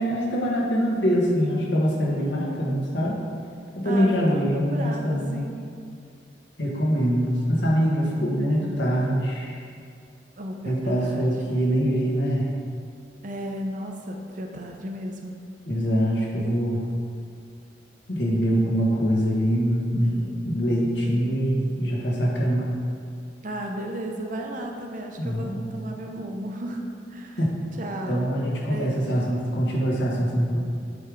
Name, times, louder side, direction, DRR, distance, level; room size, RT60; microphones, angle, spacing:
voice 1, 0.0-3.2 3.7-5.4 6.6-9.6 10.6-12.5 15.7-16.8 18.1-22.7 25.2-25.6 27.4-27.5 28.1-30.6, equal, 65° left, -4 dB, 1.3 m, -24 dB
voice 2, 2.1-2.8 3.8-5.6 8.4-8.8 10.4-11.3 13.2-15.3 23.4-26.8 27.1-27.4 27.8-28.3 28.7-29.2, right 1 dB, 45° right, 2 dB, 0.7 m, -34 dB
8.2 x 3.5 x 5.0 m, 2.3 s
head